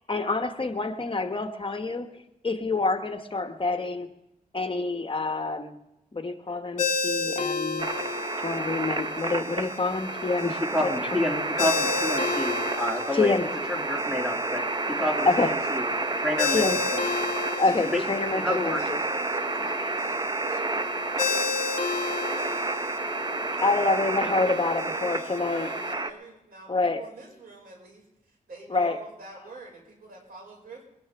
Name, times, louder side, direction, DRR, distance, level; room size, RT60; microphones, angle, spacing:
voice 1, 0.0-4.1 4.5-5.7 6.1-7.9 8.4-10.9 13.1-13.5 15.2-15.5 16.5-16.8 17.5-18.4 18.7-19.0 23.6-25.7 26.7-27.0 28.7-29.0, left 3 dB, 35° left, 7 dB, 1.1 m, -27 dB
Ringtone, 6.8-25.9, left 4 dB, 55° left, 1.6 m, -33 dB
sound 1, 7.8-26.1, right 3 dB, 30° right, 0.8 m, -30 dB
voice 2, 10.7-13.3 13.7-15.8 16.2-16.6 16.9-17.0 17.8-18.0 18.3-18.8, left 1 dB, 5° right, 1 dB, 2.6 m, -29 dB
voice 3, 18.5-23.5 24.2-30.8, right 3 dB, 80° right, 0 dB, 5.5 m, -45 dB
22.0 x 13.0 x 3.5 m, 0.87 s
cardioid pair, 75°, 15 cm